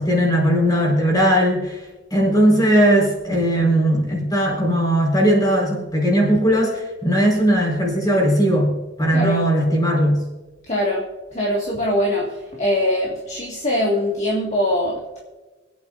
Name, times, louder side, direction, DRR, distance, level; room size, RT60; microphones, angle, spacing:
voice 1, 0.0-8.7 9.0-10.2, equal, 20° left, -2 dB, 4.6 m, -18 dB
voice 2, 9.1-9.4 10.6-15.2, left 1 dB, 40° left, -2 dB, 1.8 m, -22 dB
25.5 x 8.9 x 2.6 m, 1.2 s
head